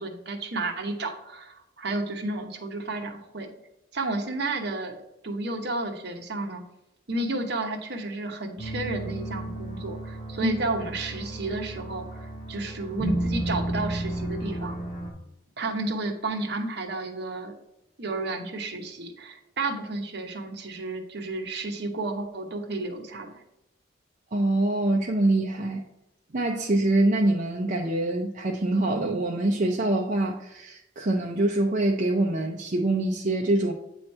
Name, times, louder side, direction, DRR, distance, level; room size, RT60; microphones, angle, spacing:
voice 1, 0.0-3.5 3.9-5.0 5.2-6.6 7.1-14.8 15.6-17.6 18.0-23.3, right 2 dB, 60° right, 3 dB, 1.0 m, -32 dB
sound 1, 8.6-15.1, right 1 dB, 35° left, 1.5 m, -33 dB
voice 2, 24.3-25.8 26.3-33.7, right 2 dB, 40° right, 0 dB, 0.6 m, -24 dB
8.7 x 3.1 x 4.2 m, 0.86 s
head